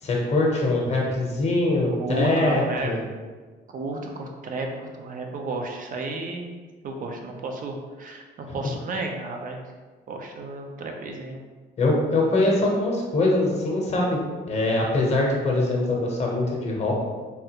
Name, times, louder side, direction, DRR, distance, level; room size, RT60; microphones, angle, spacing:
voice 1, 0.0-3.0 8.5-8.6 11.8-14.2 14.5-16.9, left 2 dB, 35° left, -2 dB, 0.8 m, -23 dB
voice 2, 2.0-2.9 3.7-6.5 6.8-9.6 10.1-11.4, right 2 dB, 50° right, 2 dB, 0.5 m, -32 dB
3.4 x 2.4 x 2.8 m, 1.4 s
cardioid pair, 120°, 19 cm